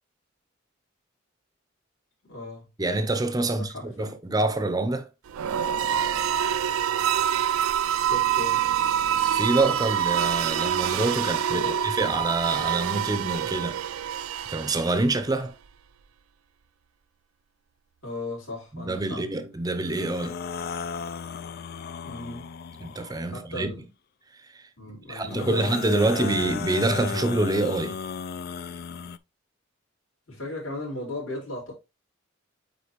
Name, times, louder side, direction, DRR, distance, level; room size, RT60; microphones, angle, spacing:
voice 1, 2.2-2.6 3.4-4.2 8.0-8.6 11.5-11.7 18.0-19.2 22.0-22.5 23.3-23.9 24.8-26.3 30.3-31.7, left 2 dB, 70° left, 4.7 m, -36 dB
voice 2, 2.8-5.1 9.3-13.8 14.5-15.5 18.7-20.4 22.8-23.8 24.5-24.6 25.1-28.0, right 2 dB, 20° right, 0.6 m, -26 dB
sound 1, 5.3-15.2, right 9 dB, 90° right, 0.4 m, -26 dB
sound 2, 19.8-23.2 25.2-29.2, left 6 dB, 50° left, 0.3 m, -35 dB
9.4 x 3.9 x 3.0 m
head